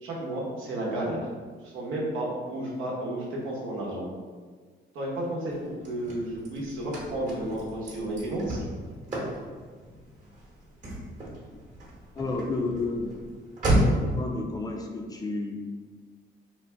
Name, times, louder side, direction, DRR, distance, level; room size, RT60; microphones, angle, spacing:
voice 1, 0.0-1.3 1.6-4.0 4.9-8.6, right 1 dB, 85° right, -4 dB, 0.9 m, -32 dB
Car / Slam, 5.5-14.2, right 1 dB, 40° right, 0.9 m, -32 dB
voice 2, 12.2-13.1 13.9-15.6, left 3 dB, 20° left, 2 dB, 0.4 m, -31 dB
2.6 x 2.2 x 3.3 m, 1.5 s
cardioid pair, 90°, 20 cm